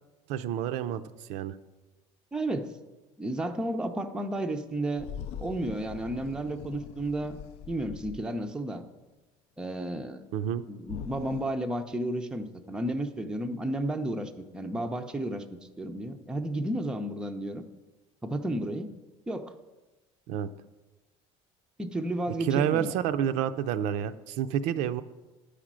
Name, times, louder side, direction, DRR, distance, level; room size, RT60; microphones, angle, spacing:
voice 1, 0.3-1.6 10.3-10.7 20.3-20.5 22.4-25.0, right 9 dB, 70° right, 11 dB, 0.5 m, -29 dB
voice 2, 2.3-2.7 3.2-5.1 5.4-7.4 7.7-8.8 9.6-10.2 10.7-15.5 15.8-17.6 18.2-18.9 19.3-19.5 21.8-23.0, right 1 dB, 5° right, 5 dB, 0.5 m, -32 dB
sound 1, 5.0-8.8 10.8-11.4, left 8 dB, 55° left, 0.3 m, -42 dB
10.0 x 5.0 x 7.4 m, 1.1 s
cardioid pair, 165°, 12 cm